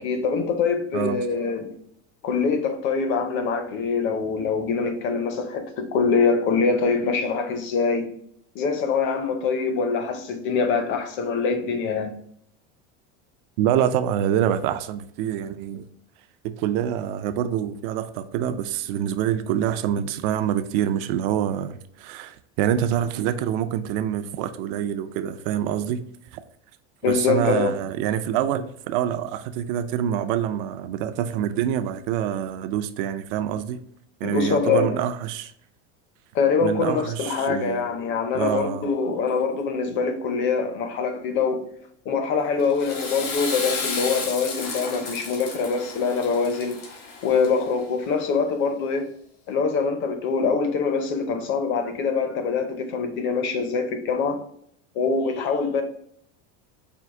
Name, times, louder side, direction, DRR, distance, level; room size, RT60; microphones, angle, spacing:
voice 1, 0.0-1.7 2.2-8.1 8.5-12.1 27.0-27.7 34.2-35.0 36.3-41.6 42.1-46.8 47.2-49.1 49.5-54.4 54.9-55.8, left 5 dB, 35° left, 0.6 m, -24 dB
voice 2, 13.6-15.8 16.6-26.0 26.3-26.4 27.1-33.8 34.2-35.5 36.6-37.9 38.3-38.9, right 10 dB, 55° right, 0.5 m, -26 dB
Water / Toilet flush, 42.6-47.8, left 4 dB, 70° left, 1.4 m, -33 dB
4.5 x 2.5 x 3.6 m
supercardioid pair, 155°, 32 cm